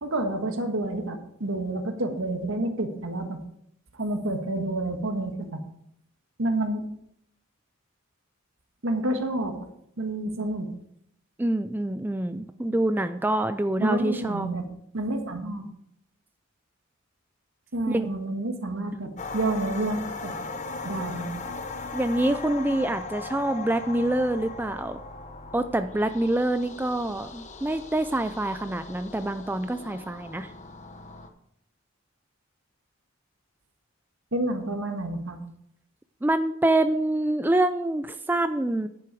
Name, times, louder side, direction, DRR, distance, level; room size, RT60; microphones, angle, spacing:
voice 1, 0.0-3.4 4.0-5.6 6.4-6.8 8.8-9.7 10.0-10.7 13.8-14.6 14.9-15.7 17.7-20.3 20.8-21.3 34.3-35.4, right 2 dB, 70° right, 5 dB, 1.6 m, -29 dB
voice 2, 11.4-14.5 17.9-18.1 21.9-25.0 25.5-30.5 36.2-38.9, right 1 dB, 10° right, 9 dB, 0.3 m, -26 dB
sound 1, 19.2-31.3, left 3 dB, 35° left, 0.9 m, -39 dB
10.5 x 8.0 x 4.7 m, 0.72 s
head